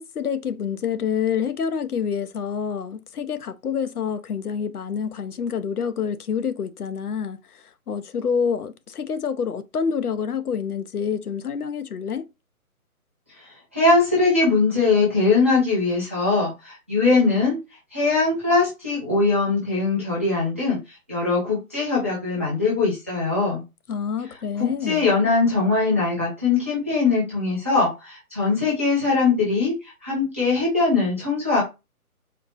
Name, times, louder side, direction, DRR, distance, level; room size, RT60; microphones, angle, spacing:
voice 1, 0.0-12.3 23.9-25.0, left 7 dB, 85° left, 0.7 m, -27 dB
voice 2, 13.3-17.6 17.9-23.6 24.6-31.6, left 3 dB, 10° right, 0.5 m, -21 dB
4.3 x 2.0 x 4.0 m
figure-of-eight pair, 150°, 44 cm